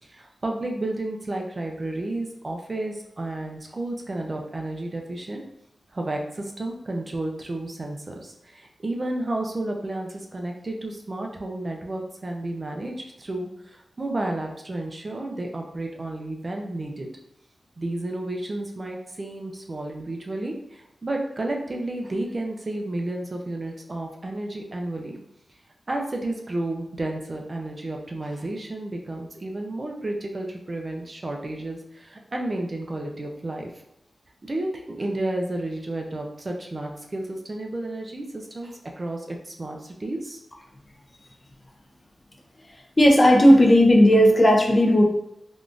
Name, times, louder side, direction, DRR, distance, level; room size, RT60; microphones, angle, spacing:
voice 1, 0.0-5.4 5.9-17.1 17.8-25.2 25.9-33.7 34.4-40.4, right 2 dB, 35° right, 1 dB, 0.5 m, -32 dB
voice 2, 43.0-45.0, equal, 25° left, 1 dB, 0.5 m, -15 dB
3.5 x 2.4 x 2.5 m, 0.80 s
wide cardioid pair, 80°, 0 cm